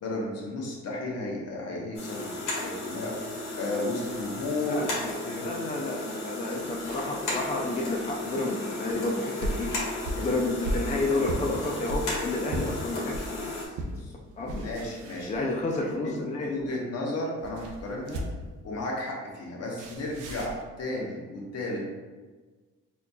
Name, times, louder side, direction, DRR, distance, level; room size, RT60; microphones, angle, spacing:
voice 1, 0.0-3.2 3.6-4.9 5.2-5.5 10.1-10.3 13.9-15.5 16.0-16.1 16.4-18.2 18.6-21.9, left 2 dB, 55° left, -2 dB, 0.9 m, -34 dB
sound 1, 1.9-13.6, left 2 dB, 85° left, 1.1 m, -35 dB
voice 2, 4.7-9.7 10.2-13.3 14.4-14.6 15.3-16.5, left 2 dB, 25° left, -1 dB, 0.4 m, -30 dB
sound 2, 8.9-13.3 13.7-14.0 14.4-15.8 17.4-18.6 19.8-20.6, right 1 dB, 85° right, 0.6 m, -35 dB
4.2 x 2.6 x 2.3 m, 1.3 s
cardioid pair, 90°, 30 cm